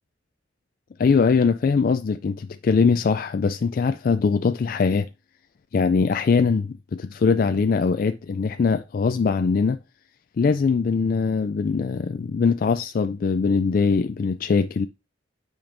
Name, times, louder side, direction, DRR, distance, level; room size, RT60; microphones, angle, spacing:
voice 1, 1.0-5.1 5.7-9.8 10.4-14.9, left 5 dB, 50° left, 0.3 m, -21 dB
8.8 x 5.1 x 2.6 m
head